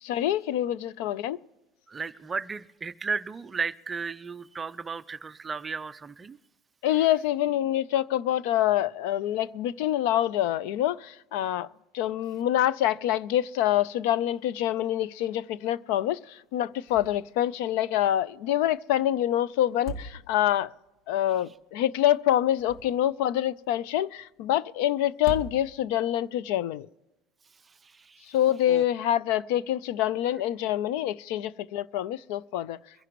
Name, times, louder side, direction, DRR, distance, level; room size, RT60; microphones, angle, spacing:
voice 1, 0.0-1.4 6.8-11.7 11.9-20.7 21.1-26.9 28.3-32.8, left 12 dB, 70° left, 0.4 m, -26 dB
voice 2, 1.9-6.4 27.8-28.3 28.7-28.8, right 5 dB, 15° right, 0.4 m, -34 dB
sound 1, 16.9-17.4 17.7-17.8 19.6-20.7 22.4-23.2 25.1-26.0, right 1 dB, 45° left, 1.3 m, -40 dB
23.0 x 11.0 x 3.0 m
cardioid pair, 160°, 0 cm